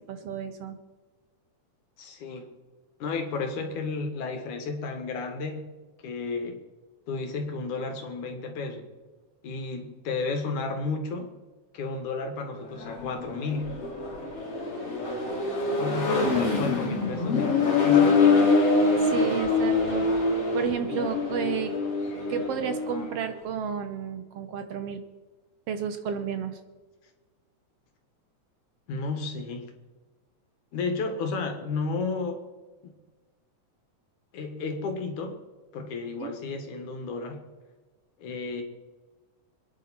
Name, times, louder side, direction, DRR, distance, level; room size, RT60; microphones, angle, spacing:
voice 1, 0.1-0.8 19.0-20.1 20.5-21.7 22.3-25.0 25.7-26.6 36.2-36.3, right 7 dB, 65° right, 8 dB, 1.7 m, -32 dB
voice 2, 2.0-2.5 3.0-5.7 6.0-6.6 7.1-8.9 9.4-11.3 11.7-13.8 15.0-15.1 15.8-18.5 28.9-29.7 30.7-32.4 32.8-32.9 34.3-35.4 35.7-37.5 38.2-38.6, left 4 dB, 85° left, 5 dB, 3.3 m, -32 dB
Accelerating revving vroom, 12.7-23.1, left 4 dB, 55° left, 4.0 m, -25 dB
26.5 x 10.5 x 4.3 m, 1.3 s
omnidirectional pair, 3.4 m